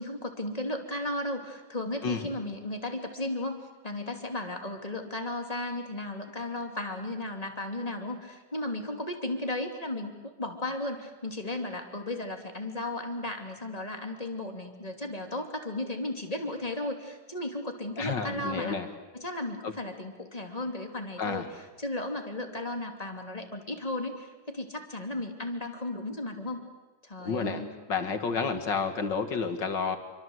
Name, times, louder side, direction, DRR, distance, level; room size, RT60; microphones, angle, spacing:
voice 1, 0.0-18.8 19.1-26.6 27.0-27.7, left 1 dB, 20° left, 4 dB, 2.8 m, -35 dB
voice 2, 18.0-18.9 19.6-19.7 21.2-21.5 27.2-27.6 27.9-30.0, left 5 dB, 65° left, 7 dB, 2.5 m, -30 dB
27.0 x 24.5 x 8.0 m, 1.2 s
omnidirectional pair, 2.2 m